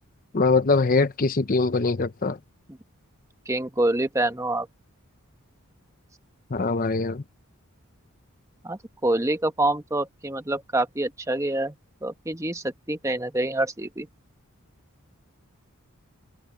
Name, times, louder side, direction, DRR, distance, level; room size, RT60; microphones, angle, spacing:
voice 1, 0.3-2.4 6.5-7.2, left 3 dB, 40° left, 0.6 m, -22 dB
voice 2, 3.5-4.7 8.6-11.7 12.0-14.1, right 1 dB, 15° right, 1.1 m, -26 dB
open air
head